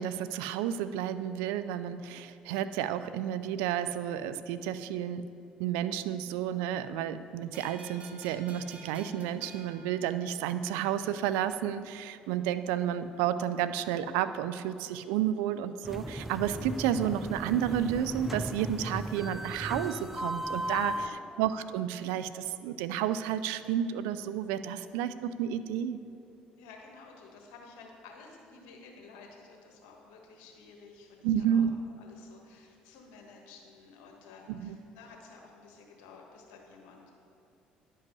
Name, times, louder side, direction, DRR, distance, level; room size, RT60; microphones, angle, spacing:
voice 1, 0.0-5.3 5.6-21.1 21.4-26.0 31.2-31.8 34.5-34.8, right 10 dB, 80° right, 13 dB, 0.3 m, -31 dB
sound 1, 7.5-10.8, right 3 dB, 40° right, 1.2 m, -52 dB
sound 2, 15.8-21.1, equal, 5° right, 0.4 m, -36 dB
voice 2, 20.6-21.2 26.6-31.7 32.0-37.2, left 4 dB, 80° left, 1 dB, 1.4 m, -52 dB
10.5 x 5.4 x 5.4 m, 2.6 s
hypercardioid pair, 65°, 4 cm